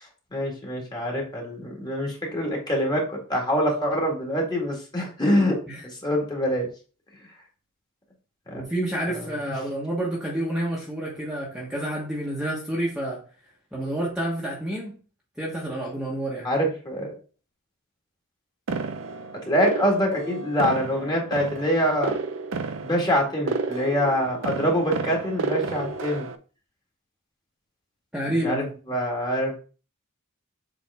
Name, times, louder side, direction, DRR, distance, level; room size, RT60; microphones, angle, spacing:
voice 1, 0.3-5.6 5.8-6.7 8.5-8.6 9.1-9.2 16.4-17.1 19.5-22.2 22.8-26.3 28.4-29.6, equal, 20° left, -1 dB, 1.9 m, -25 dB
voice 2, 8.5-13.2 13.7-14.9 15.4-16.5 28.1-28.7, right 1 dB, 5° right, -5 dB, 1.3 m, -29 dB
sound 1, 18.7-26.4, right 4 dB, 60° right, 0.6 m, -31 dB
7.6 x 3.7 x 3.6 m, 0.37 s
head